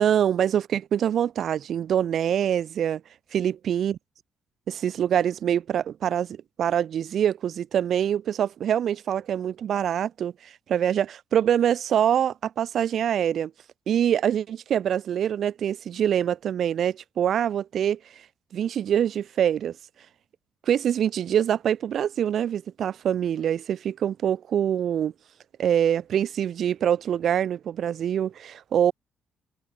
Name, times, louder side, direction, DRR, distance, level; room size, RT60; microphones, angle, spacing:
voice 1, 0.0-3.0 3.3-3.9 4.7-13.5 13.9-18.0 18.5-19.8 20.7-25.1 25.6-28.9, right 9 dB, 65° right, 1.3 m, -24 dB
cardioid pair, 90°, 0 cm